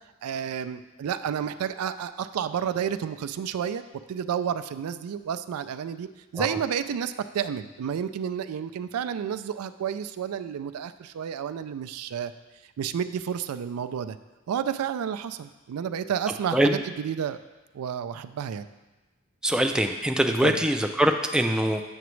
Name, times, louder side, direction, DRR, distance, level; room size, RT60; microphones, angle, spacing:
voice 1, 0.2-3.8 4.1-12.3 12.8-14.2 14.5-17.4 17.7-18.7 20.4-20.6, right 8 dB, 90° right, 11 dB, 0.3 m, -31 dB
voice 2, 19.4-21.8, right 1 dB, 5° right, 4 dB, 0.3 m, -23 dB
7.9 x 5.9 x 3.1 m, 1.2 s
head